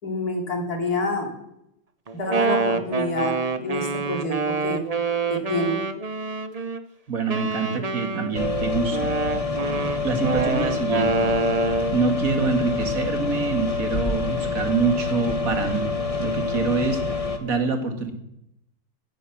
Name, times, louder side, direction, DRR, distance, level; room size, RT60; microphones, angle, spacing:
voice 1, 0.0-1.3 2.1-4.8 5.3-5.8, left 2 dB, 45° left, 2 dB, 3.4 m, -27 dB
Wind instrument woodwind instrument, 2.1-6.8 7.3-12.0, right 4 dB, 75° right, 0.3 m, -26 dB
voice 2, 7.1-9.1 10.0-11.3 11.9-15.9 16.2-17.0 17.4-18.1, right 4 dB, 40° right, 6 dB, 2.3 m, -25 dB
sound 1, 8.3-17.4, left 4 dB, 20° left, 1.1 m, -27 dB
17.5 x 10.5 x 7.3 m, 0.82 s
omnidirectional pair, 2.3 m